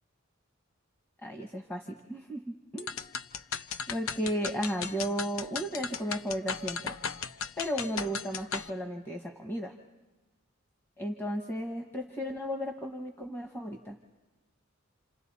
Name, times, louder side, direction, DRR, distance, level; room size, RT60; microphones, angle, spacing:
voice 1, 1.2-2.9 3.9-7.0 7.6-9.7 11.0-14.0, equal, 10° left, 2 dB, 1.1 m, -34 dB
sound 1, 2.8-8.7, left 6 dB, 85° left, 0.7 m, -37 dB
29.0 x 27.5 x 4.2 m, 1.1 s
head